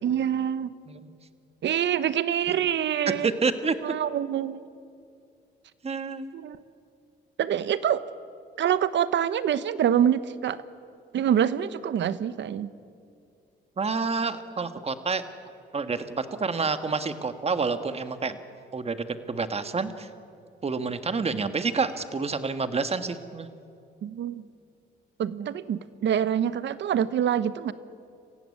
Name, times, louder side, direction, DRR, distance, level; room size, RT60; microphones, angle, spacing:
voice 1, 0.0-0.7 1.6-3.3 3.8-4.6 6.3-6.6 7.4-8.0 8.6-10.6 11.1-12.7 21.3-21.4 24.0-24.4 25.2-27.7, right 9 dB, 65° right, 15 dB, 1.0 m, -26 dB
voice 2, 3.2-3.7 5.8-6.2 13.8-15.2 15.7-18.4 18.7-20.1 20.6-23.5, right 4 dB, 30° right, 10 dB, 1.6 m, -28 dB
27.0 x 15.5 x 9.7 m, 2.4 s
cardioid pair, 90°, 20 cm